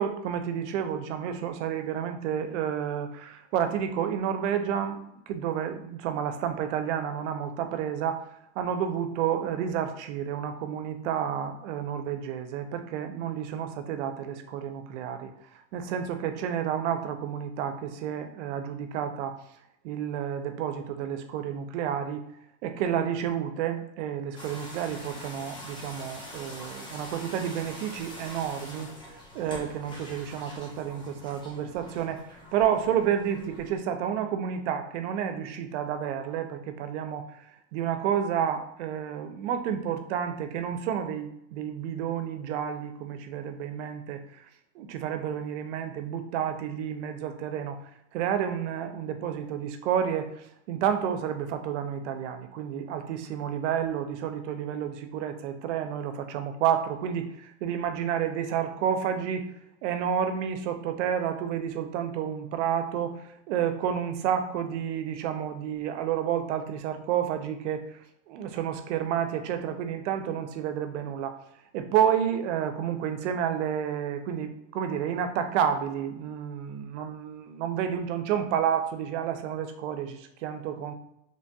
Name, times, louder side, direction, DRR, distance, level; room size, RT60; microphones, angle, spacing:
voice 1, 0.0-8.2 8.6-15.3 15.7-19.4 19.8-22.2 22.6-28.9 29.3-32.2 32.5-37.3 37.7-44.2 44.8-47.8 48.1-59.5 59.8-63.2 63.5-67.8 68.3-71.4 71.7-80.9, right 9 dB, 75° right, 8 dB, 0.5 m, -30 dB
sound 1, 24.3-33.8, left 1 dB, 15° left, 0.7 m, -44 dB
3.2 x 2.6 x 2.2 m, 0.79 s
supercardioid pair, 135°, 35 cm